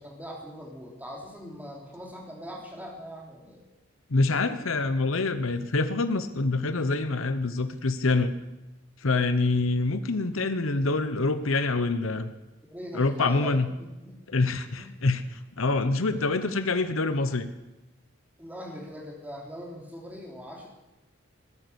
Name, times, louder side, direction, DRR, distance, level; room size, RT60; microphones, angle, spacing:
voice 1, 0.0-3.6 12.7-14.1 14.8-15.0 15.9-16.2 18.4-20.7, equal, 10° right, -1 dB, 3.4 m, -41 dB
voice 2, 4.1-8.3 9.0-12.3 12.9-13.7 14.3-17.5, left 3 dB, 80° left, 10 dB, 1.0 m, -26 dB
19.5 x 10.5 x 7.0 m, 1.0 s
head